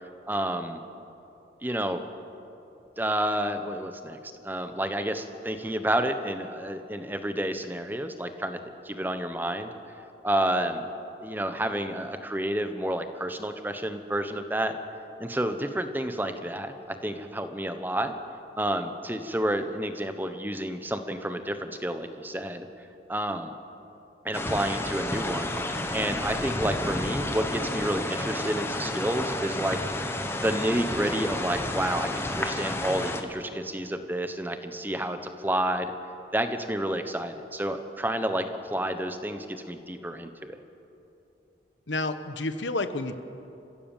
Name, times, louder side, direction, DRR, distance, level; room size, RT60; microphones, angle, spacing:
voice 1, 0.3-0.8 1.6-2.0 3.0-4.2 4.4-8.6 8.8-9.7 10.2-10.9 11.2-14.8 15.2-18.2 18.6-22.7 23.1-23.5 24.2-25.5 25.9-29.8 30.3-35.9 36.3-40.6, right 1 dB, 10° right, 8 dB, 1.0 m, -30 dB
sound 1, 24.3-33.2, left 1 dB, 15° left, 1.3 m, -31 dB
voice 2, 41.9-43.2, left 2 dB, 85° left, 10 dB, 1.2 m, -30 dB
30.0 x 15.5 x 7.4 m, 2.8 s
head